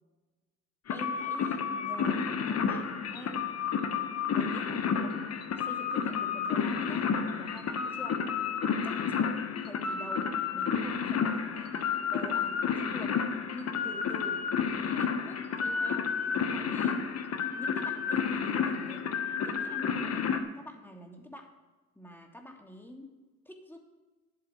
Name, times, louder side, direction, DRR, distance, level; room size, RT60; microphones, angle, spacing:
sound 1, 0.9-20.4, left 6 dB, 55° left, 1.1 m, -31 dB
voice 1, 0.9-3.6 4.3-5.3 5.5-8.2 8.8-9.3 9.6-13.2 13.5-14.5 14.8-17.1 17.5-19.1 19.4-20.3 20.5-21.5 22.0-23.1 23.5-23.8, left 1 dB, 5° left, 2 dB, 2.0 m, -46 dB
11.5 x 10.5 x 4.4 m, 1.2 s
cardioid pair, 90°, 30 cm